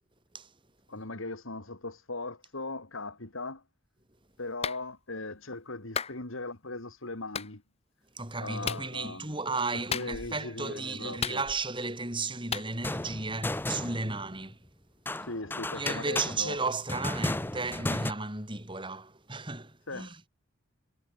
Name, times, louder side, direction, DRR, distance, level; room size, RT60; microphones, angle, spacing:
voice 1, 0.9-3.6 4.4-7.6 8.4-9.3 9.7-11.4 15.2-16.6 19.9-20.1, left 2 dB, 70° left, 2.7 m, -39 dB
Clapping, 4.6-4.8 5.9-6.2 7.3-7.5 8.6-8.9 9.9-10.4 11.2-11.8 12.5-12.7, left 6 dB, 30° left, 1.5 m, -33 dB
voice 2, 8.1-14.6 15.2-15.3 15.7-20.2, right 3 dB, 25° right, 4.6 m, -34 dB
sound 1, 12.7-14.3 15.1-18.1, left 1 dB, 10° left, 0.6 m, -34 dB
head